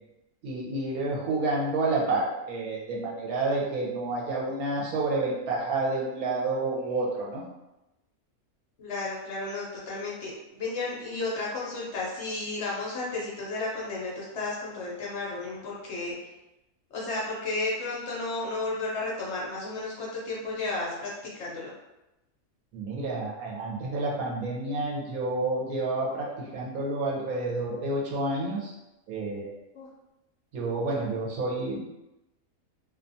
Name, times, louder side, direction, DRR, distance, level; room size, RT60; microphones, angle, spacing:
voice 1, 0.4-7.5 22.7-28.7 29.1-29.5 30.5-31.8, right 2 dB, 80° right, -3 dB, 1.2 m, -29 dB
voice 2, 8.8-16.1 16.9-21.1 21.3-21.7 29.7-29.9, left 2 dB, 60° left, -5 dB, 0.8 m, -33 dB
2.6 x 2.3 x 2.5 m, 0.96 s
omnidirectional pair, 1.5 m